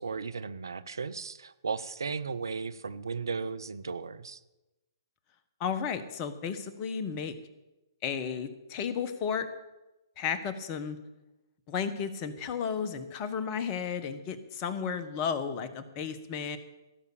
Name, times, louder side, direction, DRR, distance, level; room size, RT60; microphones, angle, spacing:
voice 1, 0.0-4.4, right 5 dB, 70° right, 14 dB, 0.7 m, -35 dB
voice 2, 5.6-7.3 8.0-9.5 10.2-11.0 11.7-16.6, left 7 dB, 30° left, 10 dB, 1.3 m, -33 dB
16.5 x 6.9 x 8.5 m, 1.0 s
figure-of-eight pair, 125°, 2 cm